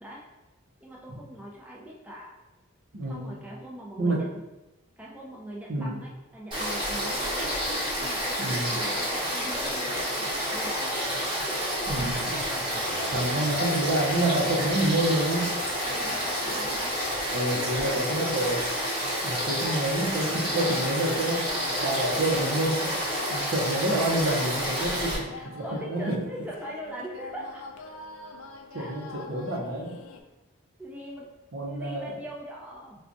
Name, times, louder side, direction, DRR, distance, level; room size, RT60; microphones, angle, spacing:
voice 1, 0.8-2.3 3.1-4.4 5.0-7.4 8.0-10.7 11.4-11.7 13.2-13.3 15.9-17.0 17.4-18.3 25.3-27.6 28.7-28.9 30.8-31.3 31.6-33.0, right 1 dB, 5° right, -4 dB, 0.4 m, -41 dB
voice 2, 2.9-3.4 4.0-4.3 5.7-6.0 8.4-8.7 11.9-12.3 13.1-15.5 17.3-18.6 19.2-21.5 21.8-23.0 23.3-26.2 28.7-30.0 31.5-32.2, right 1 dB, 65° right, -1 dB, 0.6 m, -28 dB
Frog / Stream, 6.5-25.2, equal, 20° right, 0.9 m, -29 dB
Laughter, 12.0-17.3, left 1 dB, 50° left, 0.9 m, -45 dB
sound 1, 13.5-30.2, left 4 dB, 90° left, 0.4 m, -42 dB
4.5 x 2.3 x 2.6 m, 1.0 s
head